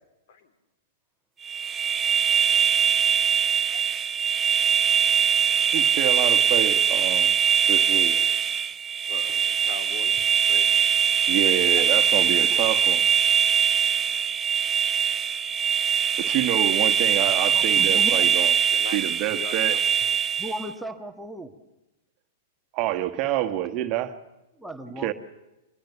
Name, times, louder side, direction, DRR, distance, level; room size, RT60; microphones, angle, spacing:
sound 1, 1.4-20.7, right 8 dB, 20° right, 0.8 m, -22 dB
voice 1, 3.7-4.0 9.1-10.2 10.5-10.7 11.4-11.8 18.7-19.0 19.3-20.2, left 5 dB, 55° left, 3.5 m, -40 dB
voice 2, 5.7-7.3 7.7-8.2 11.3-13.0 16.2-18.6 18.9-19.8 22.7-24.1 25.0-25.1, right 13 dB, 40° right, 1.6 m, -27 dB
voice 3, 17.5-18.3 20.4-21.5 24.6-25.1, equal, ahead, 1.9 m, -36 dB
25.5 x 21.5 x 7.1 m
hypercardioid pair, 105°, 0 cm